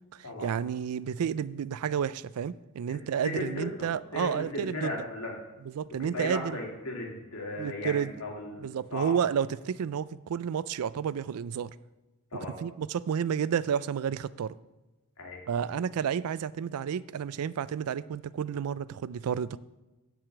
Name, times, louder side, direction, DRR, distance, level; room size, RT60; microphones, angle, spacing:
voice 1, 0.1-5.0 5.6-6.6 7.6-8.1 8.6-11.7 12.6-14.5 15.5-19.6, right 8 dB, 75° right, 18 dB, 0.3 m, -31 dB
voice 2, 2.9-5.3 6.1-8.7 8.9-9.1 12.3-12.6 15.2-15.4, left 2 dB, 75° left, -1 dB, 2.6 m, -36 dB
9.2 x 4.9 x 7.8 m, 1.1 s
head